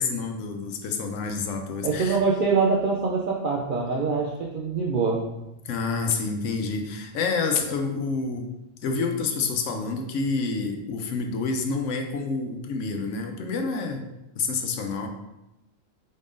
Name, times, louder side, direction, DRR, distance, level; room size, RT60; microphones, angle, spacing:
voice 1, 0.0-2.2 5.6-8.5 8.8-14.0 14.4-15.1, left 4 dB, 75° left, 4 dB, 0.9 m, -28 dB
voice 2, 1.8-5.2, right 4 dB, 65° right, -2 dB, 0.5 m, -24 dB
4.1 x 2.5 x 3.5 m, 0.93 s
omnidirectional pair, 1.3 m